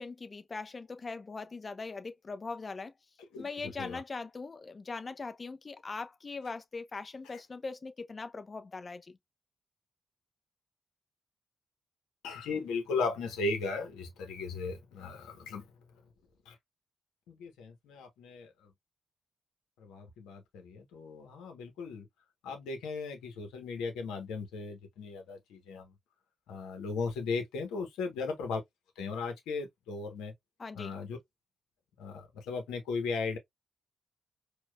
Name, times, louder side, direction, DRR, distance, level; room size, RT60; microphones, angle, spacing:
voice 1, 0.0-2.9 3.4-9.1 30.6-31.0, left 4 dB, 45° left, 0.7 m, -41 dB
voice 2, 12.2-15.6 16.5-16.6 17.3-18.7 19.8-22.0 22.4-25.9 26.5-28.6 29.0-30.3 30.7-31.2 32.0-33.4, left 4 dB, 90° left, 1.0 m, -37 dB
4.6 x 2.4 x 2.3 m
supercardioid pair, 45°, 0 cm